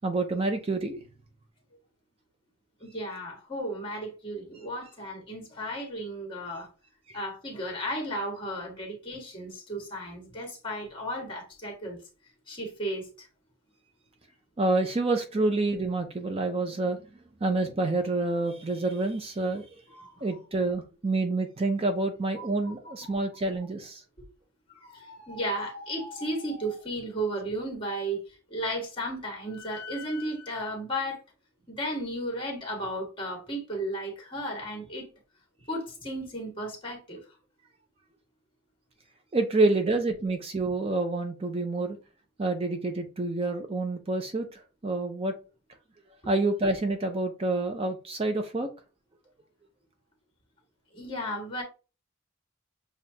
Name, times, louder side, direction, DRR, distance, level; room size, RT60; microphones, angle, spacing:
voice 1, 0.0-1.0 7.1-7.2 14.6-17.0 17.4-19.7 20.2-24.0 39.3-42.0 42.4-45.3 46.3-48.7, right 2 dB, 30° right, 0.5 m, -28 dB
voice 2, 2.8-6.7 7.1-12.0 12.5-13.3 19.9-20.2 22.4-22.7 24.7-28.2 28.5-31.2 31.7-35.1 35.7-37.2 50.9-51.6, equal, 25° left, 1.5 m, -34 dB
7.0 x 2.4 x 2.8 m
head